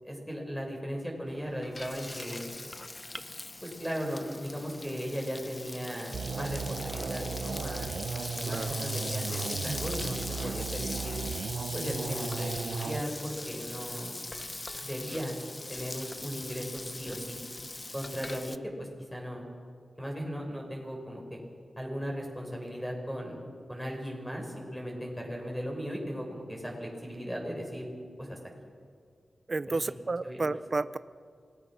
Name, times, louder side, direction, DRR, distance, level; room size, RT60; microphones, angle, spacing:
voice 1, 0.0-2.5 3.6-11.2 11.7-14.1 14.8-15.3 15.7-17.4 17.9-19.4 20.0-21.4 21.8-23.4 23.7-27.9 28.2-28.4 29.7-29.8 30.2-30.4, equal, 5° left, 0 dB, 5.7 m, -37 dB
Frying (food), 1.3-18.6, left 2 dB, 25° left, 0.7 m, -40 dB
sound 1, 6.1-13.0, right 5 dB, 85° right, 0.7 m, -36 dB
voice 2, 29.5-31.0, right 3 dB, 40° right, 14 dB, 0.5 m, -31 dB
27.5 x 19.5 x 6.3 m, 2.1 s
wide cardioid pair, 95°, 0 cm